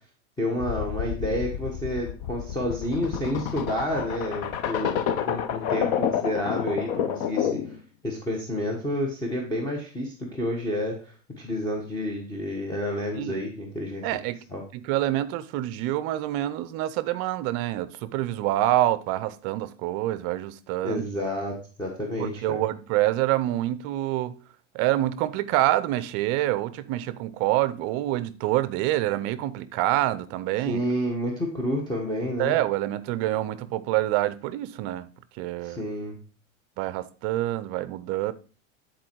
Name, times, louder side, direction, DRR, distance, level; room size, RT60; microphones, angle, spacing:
voice 1, 0.4-7.8 8.0-14.0 14.5-14.6 20.8-22.6 30.7-32.5 35.6-36.2, left 1 dB, 10° left, 1.3 m, -30 dB
sound 1, 0.6-7.8, left 9 dB, 45° left, 0.8 m, -29 dB
voice 2, 14.0-14.4 14.7-21.0 22.2-24.3 24.7-30.8 32.4-35.1 35.4-35.8 36.8-38.3, right 15 dB, 40° right, 0.6 m, -26 dB
10.5 x 4.4 x 4.6 m
supercardioid pair, 140°, 39 cm